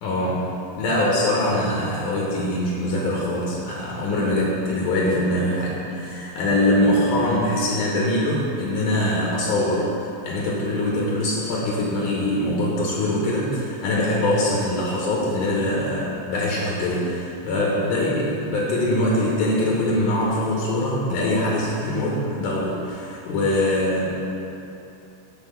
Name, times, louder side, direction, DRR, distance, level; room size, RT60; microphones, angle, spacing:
voice 1, 0.0-9.9 10.2-24.2, left 1 dB, 75° left, -4 dB, 2.5 m, -23 dB
7.6 x 4.0 x 6.6 m, 2.9 s
omnidirectional pair, 3.7 m